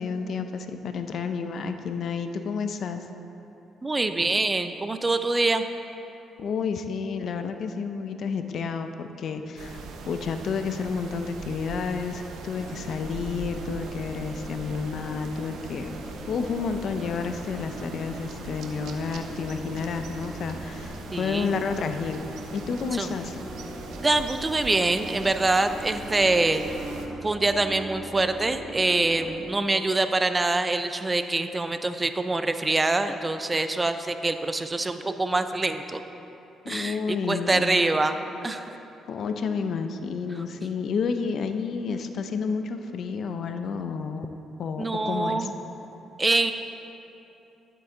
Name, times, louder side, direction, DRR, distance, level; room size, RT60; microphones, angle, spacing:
voice 1, 0.0-3.0 6.4-15.9 16.3-23.4 36.6-37.8 39.1-44.3 44.6-45.5, left 5 dB, 60° left, 7 dB, 0.6 m, -30 dB
voice 2, 3.8-5.6 21.1-21.6 22.9-23.1 24.0-26.6 27.2-36.0 36.7-37.0 37.3-38.8 44.8-45.5 46.2-46.5, right 2 dB, 20° right, 9 dB, 0.5 m, -25 dB
sound 1, 9.6-27.1, right 4 dB, 80° right, 0.8 m, -41 dB
sound 2, 12.5-29.5, equal, 20° left, 2.3 m, -41 dB
11.0 x 7.7 x 3.8 m, 2.9 s
cardioid pair, 90°, 0 cm